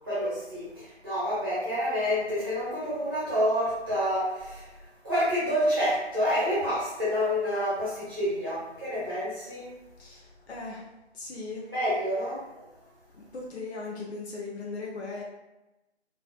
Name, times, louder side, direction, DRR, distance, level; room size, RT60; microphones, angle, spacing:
voice 1, 0.1-4.8 5.0-9.7 11.7-12.6, equal, 20° right, -11 dB, 0.7 m, -28 dB
voice 2, 10.0-10.9 11.1-11.7 13.1-15.2, left 3 dB, 65° left, -3 dB, 0.6 m, -38 dB
2.4 x 2.3 x 2.4 m, 0.98 s
figure-of-eight pair, 165°, 35 cm